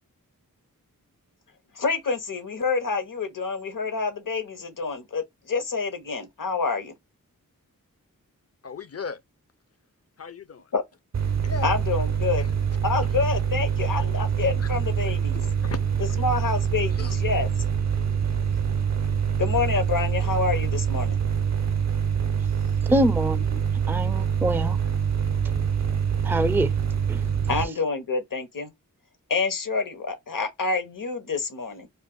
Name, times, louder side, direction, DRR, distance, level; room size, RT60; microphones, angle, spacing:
voice 1, 1.7-6.9 10.7-10.8 11.6-12.5 12.8-15.4 16.2-17.5 19.4-21.2 27.5-28.7 29.3-31.9, left 4 dB, 70° left, 1.0 m, -27 dB
voice 2, 8.6-9.2 10.2-10.7 11.4-11.7 14.6-14.7 15.3-15.8 17.0-17.2, left 5 dB, 45° left, 0.5 m, -36 dB
sound 1, 11.1-27.7, right 7 dB, 50° right, 0.6 m, -25 dB
voice 3, 22.9-23.6 23.9-24.8 26.2-26.7 27.1-27.2, right 1 dB, 5° right, 0.4 m, -24 dB
2.5 x 2.4 x 3.8 m
wide cardioid pair, 75°, 34 cm